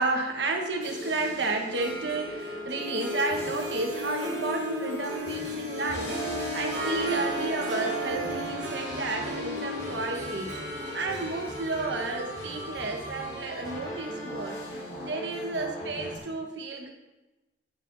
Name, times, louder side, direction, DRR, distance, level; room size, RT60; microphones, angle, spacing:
voice 1, 0.0-6.2 6.5-10.6 10.9-14.6 15.0-16.9, right 3 dB, 80° right, 2 dB, 1.3 m, -31 dB
sound 1, 0.8-16.2, equal, 65° left, 2.7 m, -39 dB
Harp, 1.6-14.5, equal, 65° right, 1.4 m, -35 dB
10.5 x 8.8 x 2.7 m, 1.0 s
head